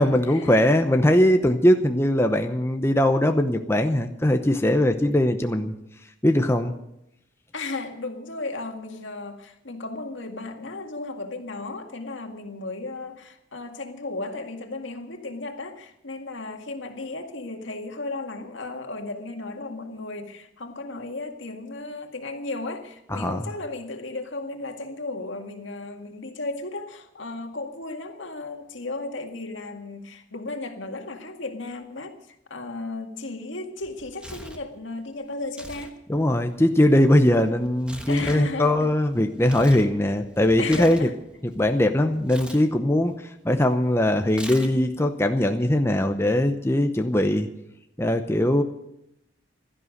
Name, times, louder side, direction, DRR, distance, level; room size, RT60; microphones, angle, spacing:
voice 1, 0.0-5.7 6.2-6.8 23.1-23.5 36.1-41.1 41.4-47.5 48.0-48.6, left 1 dB, 15° left, 6 dB, 0.8 m, -21 dB
voice 2, 7.5-36.0 38.1-38.9 39.7-39.8 40.6-41.1, left 2 dB, 75° left, 4 dB, 2.0 m, -35 dB
Tearing, 33.8-34.7 35.4-35.9 36.2-39.9 40.2-41.7 42.2-42.6 44.3-45.0, equal, 5° right, 1.3 m, -41 dB
16.0 x 12.5 x 6.5 m, 0.82 s
head